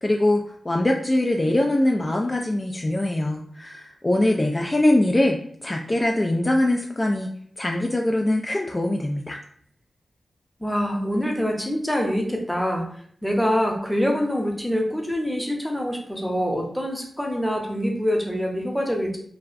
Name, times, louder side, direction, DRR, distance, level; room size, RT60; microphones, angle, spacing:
voice 1, 0.0-7.3 7.6-9.4, left 1 dB, 30° left, 1 dB, 0.3 m, -22 dB
voice 2, 10.6-12.8 13.2-19.2, equal, 5° left, 0 dB, 0.7 m, -25 dB
2.4 x 2.1 x 2.5 m, 0.62 s
cardioid pair, 40°, 0 cm